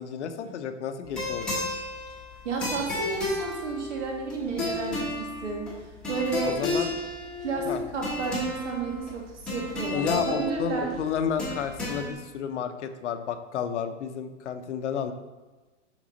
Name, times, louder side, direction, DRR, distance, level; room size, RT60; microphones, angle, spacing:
voice 1, 0.0-1.6 6.4-6.9 7.6-7.8 9.9-15.1, left 7 dB, 70° left, 8 dB, 0.9 m, -31 dB
sound 1, 1.1-12.1, left 2 dB, ahead, 1.0 m, -33 dB
voice 2, 2.4-5.8 6.1-6.9 7.4-10.9, right 4 dB, 75° right, 0 dB, 2.3 m, -32 dB
6.2 x 6.1 x 4.0 m, 1.2 s
supercardioid pair, 180°, 36 cm